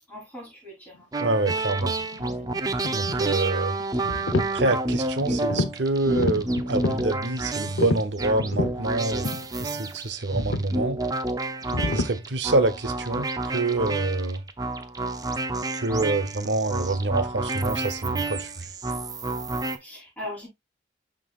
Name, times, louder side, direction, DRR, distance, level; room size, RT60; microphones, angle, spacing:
voice 1, 0.1-1.0 5.3-5.5 19.8-20.5, left 1 dB, 10° left, 3.3 m, -38 dB
sound 1, 1.1-19.8, right 2 dB, 20° right, 0.6 m, -30 dB
sound 2, 1.2-1.6 2.0-3.3 3.8-4.5 4.9-5.8 6.0-7.1 7.7-8.8 9.2-9.5 9.7-9.9 10.4-10.7 11.7-12.1, left 2 dB, 80° left, 0.8 m, -28 dB
voice 2, 1.2-2.0 2.9-3.8 4.5-9.3 9.6-11.0 11.9-14.4 15.7-18.5, right 2 dB, 70° right, 0.8 m, -26 dB
11.0 x 3.8 x 2.4 m
head